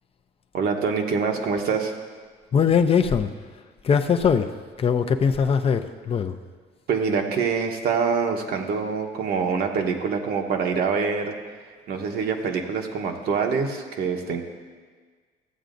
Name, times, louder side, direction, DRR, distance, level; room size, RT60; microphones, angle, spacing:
voice 1, 0.5-1.9 6.9-11.3 11.9-14.4, right 5 dB, 65° right, 3 dB, 1.0 m, -25 dB
voice 2, 2.5-3.3 3.8-4.5 4.8-6.3, left 6 dB, 35° left, 7 dB, 0.5 m, -21 dB
14.5 x 8.1 x 2.6 m, 1.5 s
cardioid pair, 110°, 17 cm